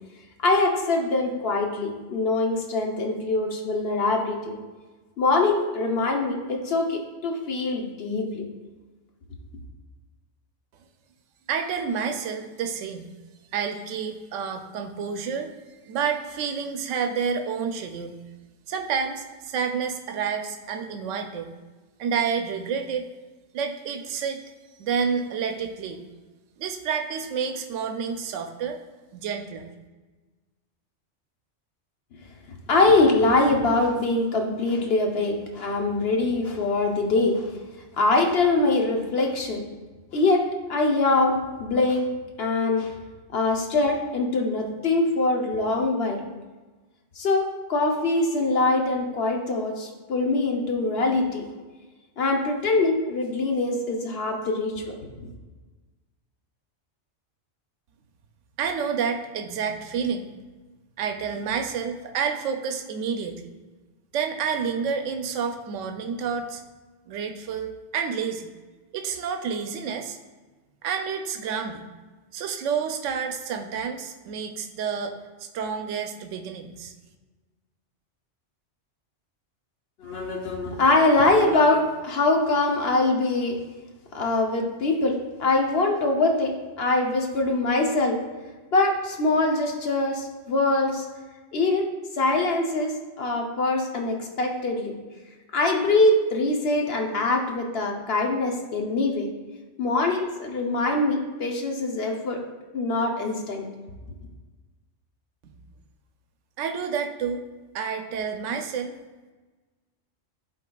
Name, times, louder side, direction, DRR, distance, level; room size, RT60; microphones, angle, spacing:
voice 1, 0.4-4.6 5.2-8.5 32.7-37.5 38.0-39.6 40.1-40.4 40.7-42.1 42.4-42.9 43.3-46.3 47.2-51.4 52.2-55.0 80.0-83.6 84.1-88.2 88.7-91.1 91.5-91.9 92.2-92.9 93.2-94.9 95.5-99.3 99.8-102.4 102.7-103.6, left 2 dB, 60° left, 2 dB, 1.0 m, -23 dB
voice 2, 11.5-13.1 13.5-15.5 15.9-18.2 18.7-21.5 22.0-23.1 23.5-24.4 24.8-26.0 26.6-28.8 29.1-29.7 58.6-60.3 61.0-63.5 64.1-66.6 67.1-68.5 68.9-70.2 70.8-71.8 72.3-76.9 105.4-105.5 106.6-107.4 107.7-108.9, right 6 dB, 85° right, 5 dB, 0.9 m, -29 dB
11.0 x 4.1 x 2.3 m, 1.3 s
omnidirectional pair, 1.3 m